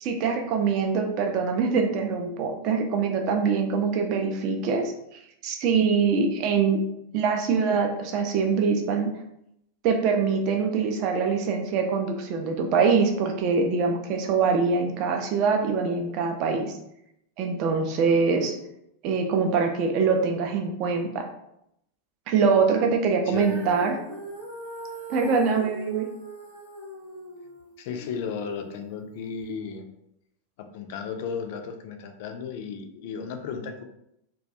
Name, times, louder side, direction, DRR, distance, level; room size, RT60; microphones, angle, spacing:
voice 1, 0.0-4.9 5.4-6.8 7.1-9.1 9.8-16.8 17.4-18.6 19.0-21.2 22.3-24.0 25.1-26.1, right 5 dB, 40° right, 4 dB, 0.4 m, -24 dB
Female singing, 23.3-29.5, right 1 dB, 75° right, 0.8 m, -41 dB
voice 2, 27.8-29.9 30.6-33.8, left 6 dB, 50° left, 6 dB, 0.3 m, -34 dB
2.2 x 2.2 x 2.6 m, 0.80 s
figure-of-eight pair, 90°, 0 cm